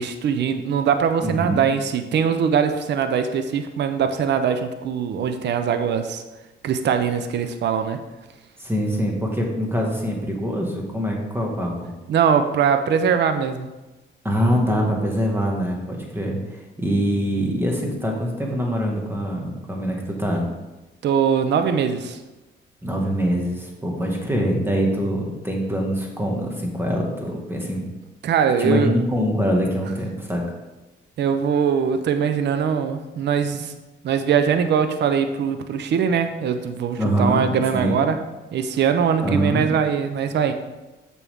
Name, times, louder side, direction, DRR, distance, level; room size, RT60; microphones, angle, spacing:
voice 1, 0.0-6.2 6.6-8.0 12.1-13.7 21.0-22.2 28.2-28.9 31.2-33.7 34.0-38.2 38.5-40.5, right 7 dB, 60° right, 8 dB, 0.6 m, -21 dB
voice 2, 1.2-1.7 8.6-11.9 14.2-20.5 22.8-27.9 28.6-30.4 37.0-38.0 39.2-39.7, equal, 10° right, 0 dB, 1.7 m, -24 dB
7.1 x 6.1 x 3.5 m, 1.1 s
cardioid pair, 90°, 20 cm